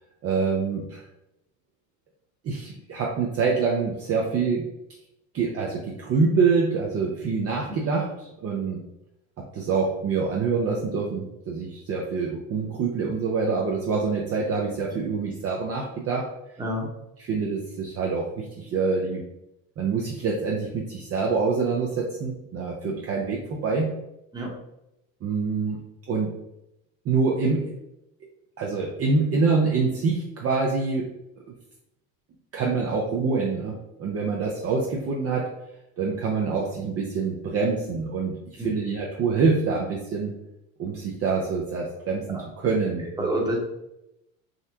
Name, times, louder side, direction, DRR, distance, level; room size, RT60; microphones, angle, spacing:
voice 1, 0.2-1.0 2.4-4.7 5.3-8.8 9.4-16.3 17.2-19.2 19.8-23.9 25.2-25.8 26.1-26.3 27.0-27.7 28.6-31.1 32.5-35.5 36.0-40.3 40.8-43.3, right 4 dB, 35° right, -2 dB, 0.6 m, -26 dB
voice 2, 16.6-16.9 24.3-24.5 38.6-38.7 42.3-42.4 43.2-43.6, right 1 dB, 10° right, -2 dB, 1.0 m, -27 dB
3.7 x 2.1 x 2.7 m, 0.86 s
supercardioid pair, 90°, 40 cm